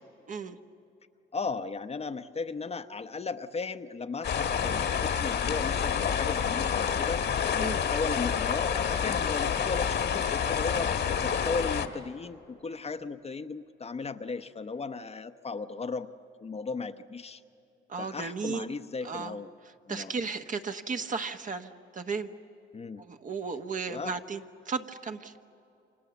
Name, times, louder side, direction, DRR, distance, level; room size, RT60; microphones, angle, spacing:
voice 1, 1.3-7.2 7.5-10.9 11.2-16.1 16.4-17.4 18.0-19.5 19.9-20.1 22.7-23.0 23.9-24.1, left 4 dB, 30° left, 8 dB, 0.9 m, -36 dB
sound 1, 4.2-11.9, left 7 dB, 60° left, 1.6 m, -28 dB
voice 2, 17.9-18.6 19.0-19.4 19.9-22.3 23.0-25.3, right 5 dB, 40° right, 7 dB, 1.2 m, -35 dB
29.0 x 26.0 x 7.1 m, 2.8 s
cardioid pair, 90°, 20 cm